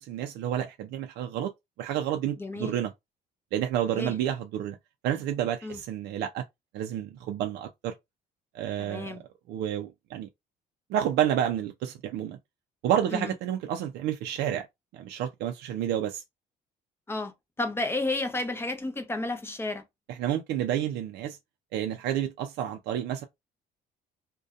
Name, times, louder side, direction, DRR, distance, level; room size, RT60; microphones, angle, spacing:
voice 1, 0.0-1.5 1.8-2.9 3.5-4.8 5.0-6.4 6.7-7.9 8.5-9.2 9.5-10.3 10.9-12.4 12.8-14.7 14.9-16.2 20.1-21.4 21.7-23.2, right 10 dB, 75° right, 0.4 m, -30 dB
voice 2, 2.4-2.7 4.0-4.1 5.6-5.8 8.8-9.2 13.1-13.3 17.1-17.3 17.6-19.8, left 2 dB, 15° left, 0.6 m, -31 dB
2.6 x 2.2 x 2.4 m
cardioid pair, 110°, 17 cm